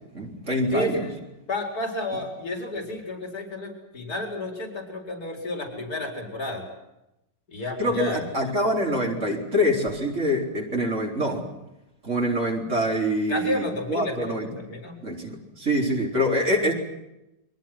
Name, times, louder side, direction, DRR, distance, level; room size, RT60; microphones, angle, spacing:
voice 1, 0.1-1.0 7.8-11.5 12.0-14.5 15.0-16.7, equal, 40° right, -1 dB, 4.4 m, -25 dB
voice 2, 0.7-1.1 1.5-6.6 7.5-8.2 13.3-15.0, left 2 dB, 60° left, 3 dB, 5.1 m, -31 dB
30.0 x 23.5 x 5.9 m, 0.92 s
omnidirectional pair, 1.9 m